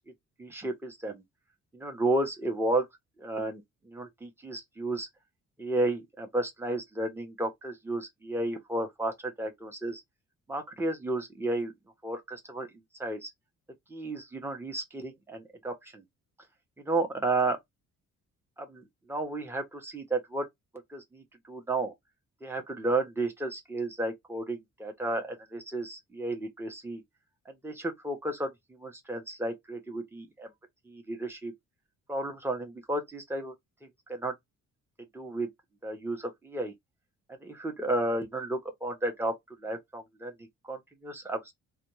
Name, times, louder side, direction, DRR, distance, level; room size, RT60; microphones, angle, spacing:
voice 1, 0.4-1.2 1.7-2.9 3.2-5.1 5.6-10.0 10.5-11.7 12.0-12.7 13.0-13.3 13.9-16.0 16.8-17.6 18.6-20.5 20.9-21.9 22.4-27.0 27.5-30.5 30.9-31.5 32.1-33.5 34.1-34.3 35.1-35.5 35.8-36.7 37.4-39.3 39.6-41.5, right 2 dB, 10° right, 0.9 m, -32 dB
2.4 x 2.3 x 3.1 m
cardioid pair, 90°, 30 cm